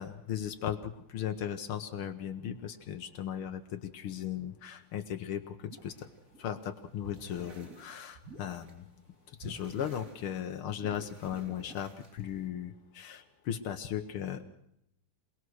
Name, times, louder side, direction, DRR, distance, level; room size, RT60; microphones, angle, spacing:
voice 1, 0.0-6.1 6.4-8.9 9.4-14.4, left 9 dB, 80° left, 8 dB, 2.0 m, -37 dB
sound 1, 5.7-8.8 9.1-12.5, right 1 dB, 40° right, 3.6 m, -50 dB
27.5 x 19.5 x 6.3 m, 0.76 s
omnidirectional pair, 2.3 m